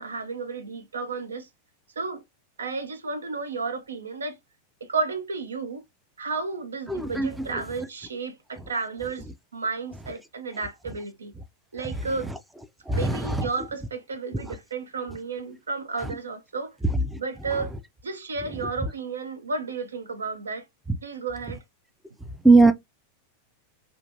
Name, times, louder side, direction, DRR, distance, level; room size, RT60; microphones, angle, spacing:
voice 1, 0.0-1.5 2.0-2.2 2.6-4.4 4.8-5.8 6.2-11.3 11.7-12.3 12.9-16.8 17.2-20.6 21.0-21.6, right 4 dB, 70° right, 0.4 m, -32 dB
voice 2, 6.9-7.3 12.9-13.3 22.4-22.7, right 3 dB, 5° right, 0.3 m, -17 dB
2.5 x 2.4 x 2.5 m
figure-of-eight pair, 90°, 0 cm